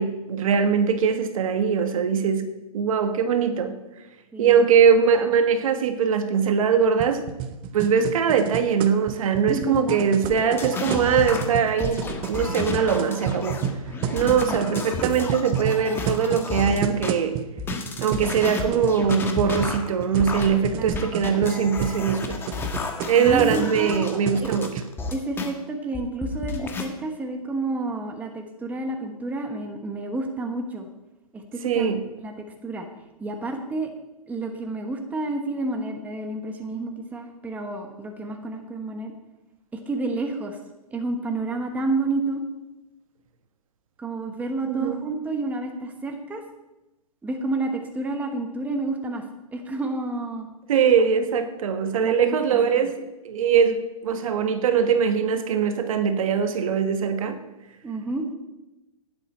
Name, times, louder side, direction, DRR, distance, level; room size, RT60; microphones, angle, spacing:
voice 1, 0.0-2.5 2.7-3.7 4.4-7.2 7.7-13.6 14.1-17.4 18.0-22.4 23.1-24.7 31.6-32.0 44.7-45.0 50.7-57.4, right 7 dB, 65° right, 8 dB, 1.4 m, -22 dB
voice 2, 4.3-4.6 9.5-10.1 14.2-14.6 20.7-21.0 23.1-24.1 24.4-24.5 25.1-30.9 31.3-31.9 32.2-32.3 32.6-32.9 33.2-33.9 34.3-39.1 39.7-40.6 40.9-42.4 44.0-46.4 47.2-49.2 49.5-50.5 52.0-52.8 57.8-58.3, right 2 dB, 10° right, 4 dB, 1.0 m, -30 dB
sound 1, 7.0-24.8, right 8 dB, 25° right, 0.7 m, -31 dB
sound 2, 10.2-17.1 17.6-25.5 25.9-26.8, left 4 dB, 10° left, 1.2 m, -32 dB
12.0 x 9.8 x 4.3 m, 1.0 s
hypercardioid pair, 145°, 19 cm